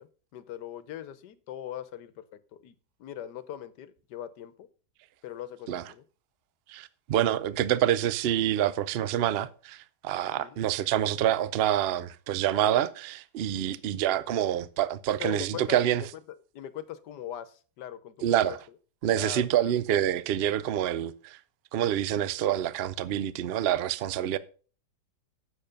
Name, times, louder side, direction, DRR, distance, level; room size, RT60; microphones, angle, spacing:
voice 1, 0.0-2.7 3.0-4.7 5.2-6.0 10.3-10.6 15.2-16.1 16.5-18.6 19.1-19.8, left 11 dB, 80° left, 1.4 m, -41 dB
voice 2, 6.7-16.0 18.2-18.6 19.0-21.4 21.7-24.4, right 11 dB, 75° right, 0.5 m, -27 dB
8.9 x 7.2 x 5.2 m
omnidirectional pair, 1.8 m